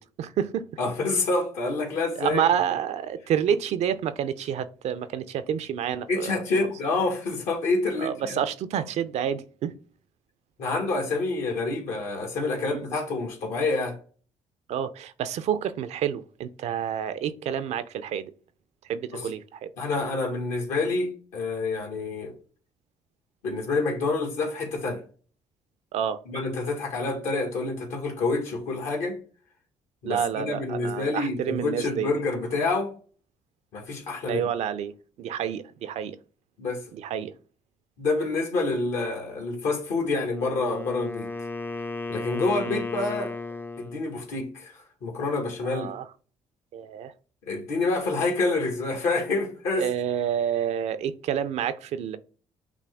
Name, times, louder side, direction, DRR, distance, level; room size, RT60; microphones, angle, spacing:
voice 1, 0.2-0.7 2.2-6.7 8.0-9.7 12.6-13.0 14.7-18.3 18.9-19.7 25.9-26.2 30.0-32.1 34.3-34.9 35.2-36.2 36.9-37.3 42.7-42.8 45.6-46.1 46.7-47.1 49.8-52.2, right 9 dB, 70° right, 0.5 m, -29 dB
voice 2, 0.8-2.5 6.1-8.4 10.6-14.0 19.1-19.3 19.8-22.3 23.4-25.0 26.2-29.2 30.0-32.9 33.7-34.4 36.6-36.8 38.0-41.3 42.1-43.3 43.8-44.7 45.0-45.9 47.4-49.9, left 3 dB, 80° left, 1.7 m, -27 dB
Wind instrument woodwind instrument, 40.2-44.1, left 3 dB, 15° left, 0.4 m, -35 dB
5.9 x 2.2 x 3.5 m
supercardioid pair, 70°, 12 cm